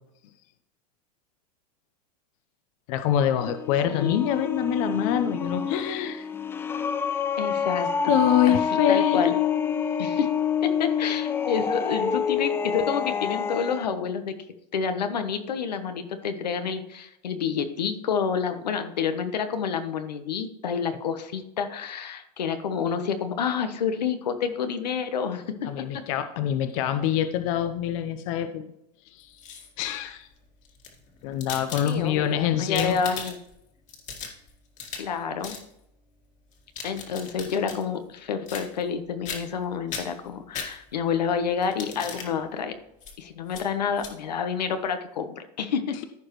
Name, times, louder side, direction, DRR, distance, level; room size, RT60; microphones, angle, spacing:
voice 1, 2.9-6.3 8.1-10.1 25.7-28.7 29.1-29.4 29.8-30.3 31.2-33.0, left 10 dB, 55° left, 9 dB, 0.8 m, -25 dB
sound 1, 3.4-13.9, left 6 dB, 10° left, 0.3 m, -28 dB
voice 2, 3.9-4.2 7.4-8.1 8.5-9.3 10.0-10.3 10.6-14.4 14.7-25.8 31.8-33.4 34.9-35.5 36.8-42.7 43.2-46.0, left 6 dB, 90° left, 8 dB, 1.1 m, -29 dB
sound 2, 29.2-29.9 30.6-32.3 32.6-33.5 33.9-35.2 35.4-35.7 36.5-37.8 38.5-39.0 39.3-39.6 39.9-41.1 41.6-42.3 43.0-43.1 43.5-43.6 44.0-44.1, left 6 dB, 35° left, 1.9 m, -38 dB
14.5 x 4.9 x 3.1 m, 0.82 s
hypercardioid pair, 120°, 21 cm